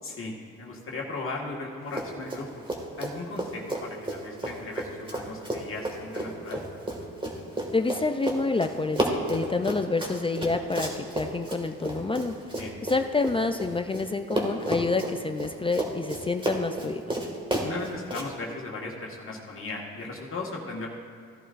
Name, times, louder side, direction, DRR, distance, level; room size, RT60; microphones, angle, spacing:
voice 1, 0.0-2.6 3.0-6.6 12.6-12.8 17.6-20.9, left 3 dB, 45° left, -2 dB, 1.7 m, -37 dB
Run, 1.9-2.4 2.7-14.0 14.3-18.3, right 1 dB, 15° right, 1.9 m, -31 dB
voice 2, 7.7-12.4 12.9-17.1, left 3 dB, 20° left, 7 dB, 0.4 m, -28 dB
16.0 x 11.0 x 2.5 m, 2.1 s
cardioid pair, 90°, 30 cm